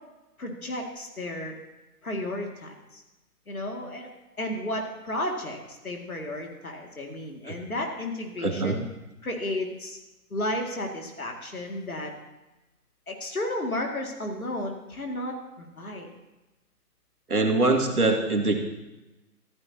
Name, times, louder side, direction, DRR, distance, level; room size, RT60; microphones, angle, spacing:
voice 1, 0.4-1.5 2.0-3.0 3.5-4.1 4.4-8.8 9.2-10.0 10.3-12.1 13.1-16.1, left 1 dB, 60° left, 1 dB, 2.4 m, -33 dB
voice 2, 8.4-8.8 17.3-18.6, right 2 dB, 70° right, 3 dB, 2.1 m, -23 dB
14.0 x 14.0 x 2.9 m, 1.0 s
figure-of-eight pair, 175°, 48 cm